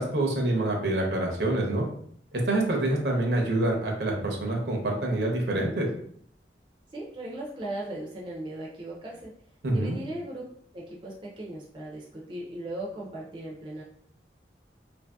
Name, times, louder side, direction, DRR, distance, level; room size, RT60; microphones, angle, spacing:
voice 1, 0.0-1.8 2.3-5.9 9.6-10.0, right 2 dB, 75° right, 0 dB, 0.7 m, -26 dB
voice 2, 6.9-9.3 9.7-10.4 10.7-13.8, right 1 dB, 30° right, -3 dB, 0.4 m, -37 dB
2.8 x 2.6 x 2.2 m, 0.64 s
head